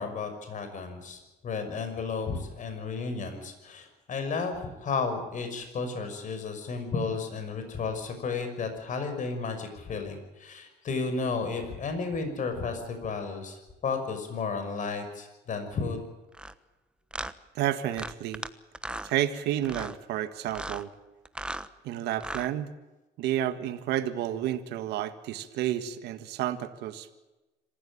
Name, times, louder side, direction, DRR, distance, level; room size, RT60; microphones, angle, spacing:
voice 1, 0.0-16.0, left 4 dB, 50° left, 7 dB, 6.0 m, -33 dB
sound 1, 16.3-16.5 17.1-17.3 17.9-18.5 18.7-19.1 19.6-20.0 20.5-20.8 21.2-21.7 22.1-22.5, right 1 dB, 5° right, 1.1 m, -36 dB
voice 2, 17.6-18.4 19.0-20.9 21.8-22.7 23.2-27.1, right 12 dB, 80° right, 10 dB, 1.7 m, -30 dB
26.5 x 15.5 x 8.8 m, 1.1 s
cardioid pair, 110°, 17 cm